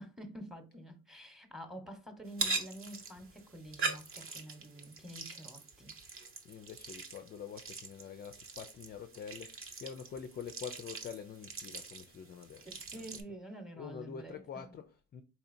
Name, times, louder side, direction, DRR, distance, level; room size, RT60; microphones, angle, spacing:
voice 1, 0.0-5.9 12.6-14.7, right 1 dB, ahead, 0.9 m, -48 dB
sound 1, 2.3-13.2, right 3 dB, 40° right, 0.8 m, -42 dB
voice 2, 6.4-13.1 13.7-15.2, left 7 dB, 30° left, 0.3 m, -46 dB
4.2 x 2.8 x 2.6 m
supercardioid pair, 70°, 35 cm